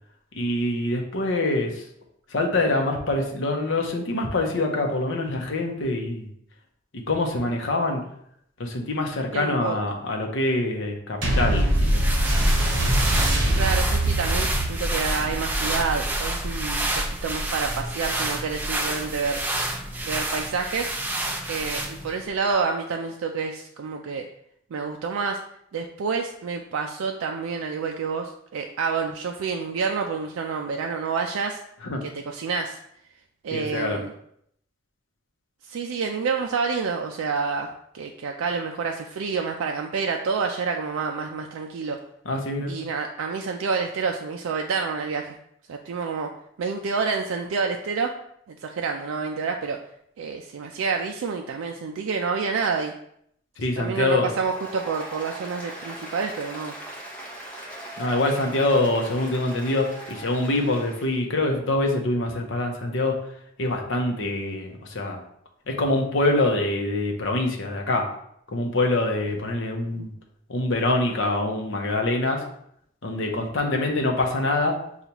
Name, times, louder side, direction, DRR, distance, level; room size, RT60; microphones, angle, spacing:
voice 1, 0.3-1.8 2.3-6.3 6.9-8.0 8.6-12.1 31.8-32.0 33.5-34.0 42.2-42.7 53.6-54.3 58.0-63.1 63.6-65.2 65.7-68.1 68.5-70.1 70.5-72.4 73.0-74.7, left 2 dB, 65° left, 2 dB, 0.7 m, -25 dB
voice 2, 9.3-9.8 13.5-16.9 17.2-19.4 20.0-20.9 21.5-24.3 24.7-25.4 25.7-31.6 32.0-32.8 33.4-34.1 35.6-37.7 37.9-42.0 42.7-45.4 45.7-46.3 46.6-48.1 48.5-49.8 50.2-52.9 53.8-56.7 70.0-70.1, right 5 dB, 80° right, 2 dB, 0.4 m, -28 dB
sound 1, 11.2-20.0 20.7-20.8, right 1 dB, 60° right, 1.2 m, -25 dB
sound 2, 11.5-22.2, right 1 dB, 10° right, 0.3 m, -29 dB
Applause, 54.2-61.2, right 1 dB, 5° left, 0.8 m, -40 dB
6.7 x 2.4 x 2.9 m, 0.71 s
head